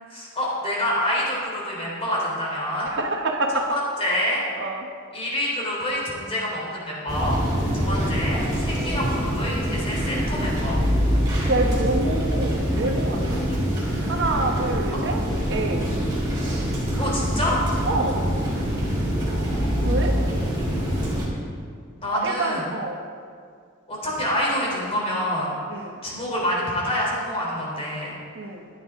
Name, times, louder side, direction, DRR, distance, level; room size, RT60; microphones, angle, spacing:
voice 1, 0.1-2.9 4.0-4.4 5.1-7.4 7.7-10.8 13.5-13.8 17.0-17.6 19.3-20.3 22.0-22.6 23.9-28.2, left 1 dB, 30° left, -4 dB, 3.4 m, -27 dB
voice 2, 2.8-3.7 4.5-4.9 7.7-8.0 11.3-13.4 14.1-15.9 17.8-18.2 19.8-20.2 22.1-23.0 25.7-26.0 28.3-28.7, right 2 dB, 60° right, 2 dB, 1.1 m, -27 dB
sound 1, 7.1-21.3, equal, 20° right, 3.4 m, -24 dB
14.5 x 10.5 x 3.6 m, 2.2 s
head